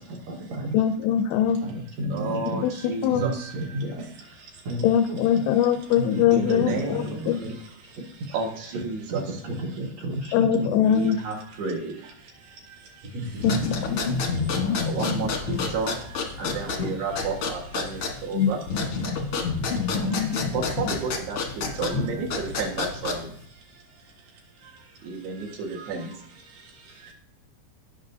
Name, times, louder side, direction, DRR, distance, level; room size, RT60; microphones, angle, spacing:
voice 1, 0.1-0.8 1.6-2.6 3.1-4.0 4.6-5.2 6.0-7.6 7.8-8.0 8.3-8.5 8.7-10.7 13.0-13.6, right 1 dB, 60° right, -3 dB, 1.9 m, -33 dB
voice 2, 0.7-1.6 2.6-2.7 3.0-3.2 4.8-7.4 10.3-11.2 13.4-13.5 13.9-14.0 18.3-18.5, left 9 dB, 90° left, 8 dB, 2.6 m, -22 dB
voice 3, 2.1-3.8 4.5-4.6 6.3-7.3 8.3-9.2 10.8-13.2 14.3-18.6 19.0-19.5 19.8-23.8 24.6-27.1, right 4 dB, 85° right, -1 dB, 3.6 m, -33 dB
sound 1, 13.4-23.4, left 4 dB, 70° left, 1.3 m, -28 dB
17.0 x 5.9 x 2.7 m, 0.67 s
omnidirectional pair, 4.4 m